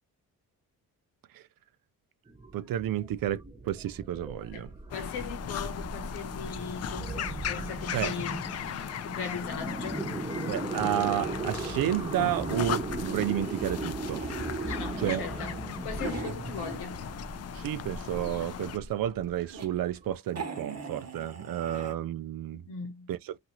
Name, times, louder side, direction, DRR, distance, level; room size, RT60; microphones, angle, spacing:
sound 1, 2.3-20.1, right 2 dB, 10° right, 0.9 m, -38 dB
voice 1, 2.5-4.7 7.9-8.1 10.5-14.3 15.0-15.2 17.5-22.6 23.1-23.4, right 12 dB, 65° right, 0.5 m, -31 dB
voice 2, 4.5-10.1 14.6-17.0 21.7-21.8 22.6-23.1, left 6 dB, 90° left, 1.0 m, -39 dB
sound 2, 4.9-18.8, left 9 dB, 45° left, 0.4 m, -38 dB
sound 3, 12.8-17.4 17.8-18.6 19.1-19.7 20.0-20.1 20.3-21.9, right 4 dB, 45° right, 0.9 m, -42 dB
2.7 x 2.4 x 2.9 m
cardioid pair, 65°, 38 cm